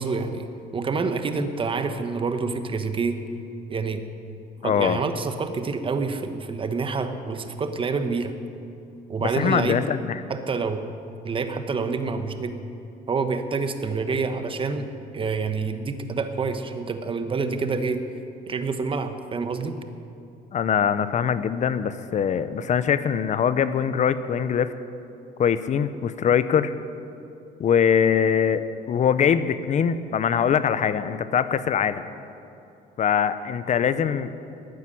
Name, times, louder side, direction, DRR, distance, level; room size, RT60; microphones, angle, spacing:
voice 1, 0.0-3.2 3.7-4.0 4.6-8.3 9.1-9.8 10.3-10.8 11.2-12.6 13.1-14.9 15.1-18.0 18.5-19.8, right 4 dB, 30° right, 8 dB, 1.2 m, -27 dB
voice 2, 4.6-5.0 9.2-10.2 20.5-24.7 25.4-26.7 27.6-32.0 33.0-34.4, left 8 dB, 45° left, 13 dB, 0.7 m, -22 dB
13.0 x 9.3 x 9.9 m, 2.7 s
cardioid pair, 110°, 17 cm